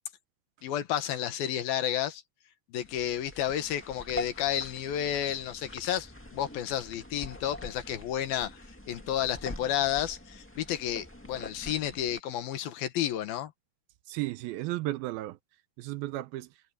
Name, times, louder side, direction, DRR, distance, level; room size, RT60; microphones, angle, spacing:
voice 1, 0.6-2.2 2.7-8.5 8.9-13.5, left 11 dB, 75° left, 3.1 m, -31 dB
sound 1, 2.8-12.2, left 1 dB, 15° left, 0.4 m, -44 dB
voice 2, 14.1-15.4 15.8-16.5, right 17 dB, 80° right, 2.4 m, -34 dB
omnidirectional pair, 4.5 m